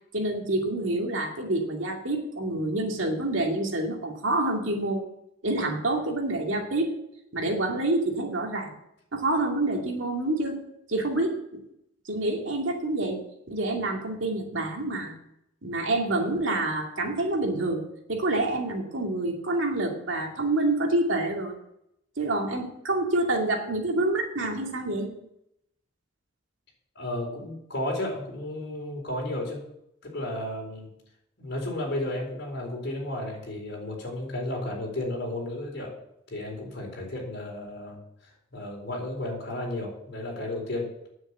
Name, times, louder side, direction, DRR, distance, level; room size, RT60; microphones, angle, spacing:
voice 1, 0.1-5.1 5.4-6.9 7.3-8.7 9.1-10.6 10.9-11.6 12.1-13.2 13.5-15.2 15.6-17.8 18.1-21.5 22.2-25.1, right 2 dB, 70° right, 1 dB, 2.4 m, -27 dB
voice 2, 26.9-29.6 30.0-30.9 31.4-35.9 36.3-38.0 38.5-40.9, left 1 dB, 55° left, -1 dB, 4.3 m, -33 dB
9.7 x 7.9 x 8.3 m, 0.79 s
head